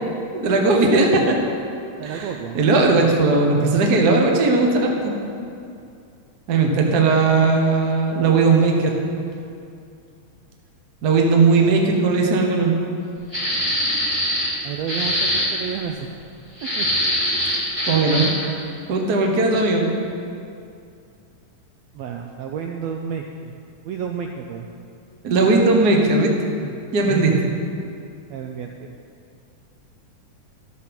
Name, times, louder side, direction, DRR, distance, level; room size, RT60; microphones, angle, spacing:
voice 1, 0.3-1.4 2.0-2.3 2.5-5.1 6.5-8.9 11.0-12.7 17.9-18.3 18.9-19.9 25.2-26.3 26.9-27.3, right 3 dB, 55° right, 1 dB, 1.0 m, -18 dB
voice 2, 2.0-2.6 14.6-16.1 16.6-16.9 21.9-23.5 23.8-24.7 26.6-26.7 27.0-27.5 28.3-28.9, right 7 dB, 80° right, 3 dB, 1.6 m, -30 dB
sound 1, 13.3-14.6 14.9-15.5 16.6-18.4, equal, 10° right, 1.9 m, -22 dB
12.5 x 7.4 x 5.9 m, 2.5 s
omnidirectional pair, 3.5 m